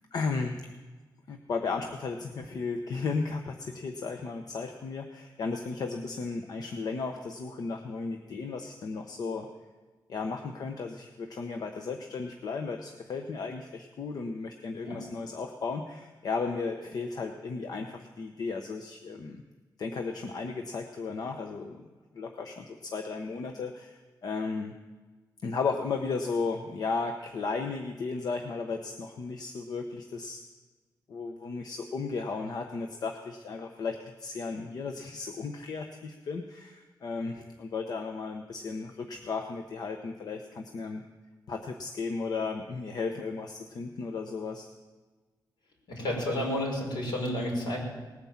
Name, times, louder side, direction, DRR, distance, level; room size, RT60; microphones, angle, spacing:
voice 1, 0.1-0.7 1.3-9.5 10.1-19.4 19.8-21.9 22.1-24.7 25.4-30.4 31.1-41.0 41.5-44.7, left 4 dB, 60° left, 4 dB, 1.0 m, -35 dB
voice 2, 45.9-47.8, left 1 dB, 80° left, -1 dB, 5.5 m, -31 dB
19.5 x 9.7 x 7.3 m, 1.3 s
wide cardioid pair, 170°, 8 cm